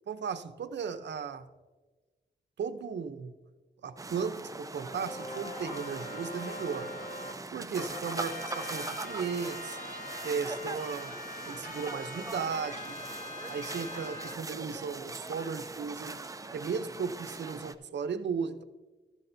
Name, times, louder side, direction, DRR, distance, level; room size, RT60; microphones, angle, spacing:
voice 1, 0.1-1.4 2.6-3.3 3.8-6.9 7.5-9.8 10.2-11.1 11.5-13.0 13.5-16.2 16.5-18.6, right 6 dB, 80° right, 11 dB, 0.7 m, -36 dB
sound 1, 4.0-17.7, right 3 dB, 20° right, 0.5 m, -41 dB
sound 2, 4.8-7.3 7.8-14.3, left 2 dB, 50° left, 1.4 m, -42 dB
14.0 x 11.0 x 2.7 m, 1.2 s
wide cardioid pair, 115°, 18 cm